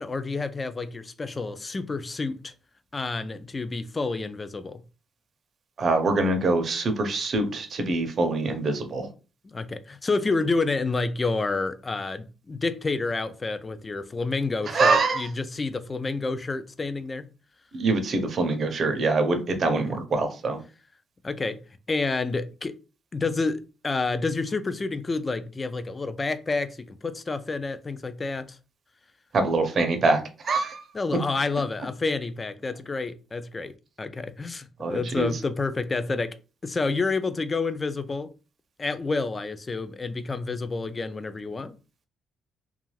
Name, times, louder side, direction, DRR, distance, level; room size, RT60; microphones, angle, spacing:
voice 1, 0.0-2.5 2.9-4.8 9.4-17.3 19.8-19.9 21.2-21.6 21.9-22.8 23.1-28.6 30.9-33.7 34.0-36.4 36.6-38.3 38.8-41.7, left 3 dB, 30° left, 0.3 m, -29 dB
voice 2, 5.8-9.1 14.7-15.3 17.7-20.6 29.3-30.8 34.8-35.4, right 3 dB, 50° right, 0.6 m, -24 dB
2.4 x 2.3 x 3.1 m
cardioid pair, 90°, 0 cm